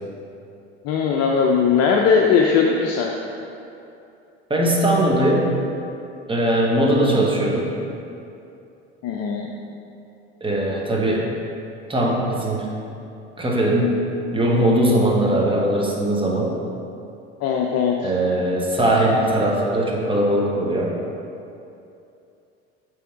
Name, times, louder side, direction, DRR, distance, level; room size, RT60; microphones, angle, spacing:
voice 1, 0.8-3.1 6.9-7.3 9.0-9.5 17.4-18.1, left 6 dB, 50° left, 0 dB, 0.6 m, -19 dB
voice 2, 4.5-5.5 6.3-7.8 10.4-11.3 11.9-12.7 13.4-14.0 14.3-16.6 18.0-20.9, right 1 dB, 15° right, -2 dB, 1.3 m, -20 dB
6.9 x 3.5 x 4.6 m, 2.7 s
hypercardioid pair, 70°, 32 cm